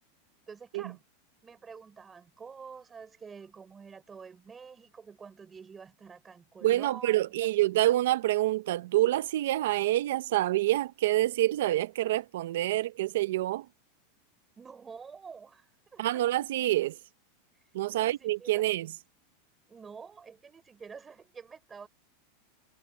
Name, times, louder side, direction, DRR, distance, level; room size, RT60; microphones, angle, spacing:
voice 1, 0.5-1.0 1.4-7.5 14.6-16.2 17.9-18.6 19.7-21.9, right 5 dB, 15° right, 4.4 m, -48 dB
voice 2, 6.6-13.7 16.0-17.0 17.7-18.9, right 15 dB, 70° right, 0.7 m, -27 dB
supercardioid pair, 160°, 0 cm